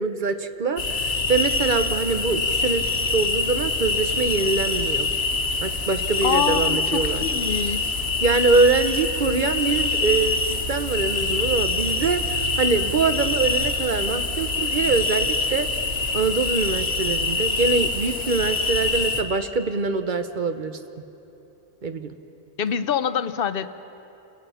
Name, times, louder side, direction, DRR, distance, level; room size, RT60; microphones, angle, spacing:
voice 1, 0.0-2.9 3.1-5.1 5.6-7.2 8.2-15.7 16.1-20.8 21.8-22.1, right 4 dB, 50° right, 9 dB, 0.9 m, -24 dB
sound 1, 0.8-19.2, left 3 dB, 85° left, 1.6 m, -25 dB
voice 2, 6.2-8.0 22.6-23.7, left 8 dB, 60° left, 13 dB, 0.8 m, -26 dB
29.5 x 18.5 x 5.6 m, 2.9 s
omnidirectional pair, 1.2 m